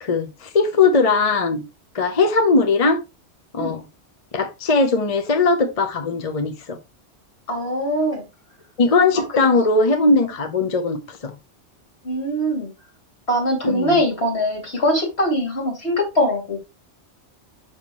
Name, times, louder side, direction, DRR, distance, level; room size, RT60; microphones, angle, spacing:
voice 1, 0.0-1.6 1.9-3.0 3.5-3.8 4.3-6.8 8.8-11.3 13.6-14.0, left 3 dB, 35° left, 0.7 m, -19 dB
voice 2, 7.5-8.2 12.0-12.7 13.3-16.6, equal, 60° left, 2.8 m, -22 dB
6.3 x 5.7 x 3.0 m
omnidirectional pair, 1.2 m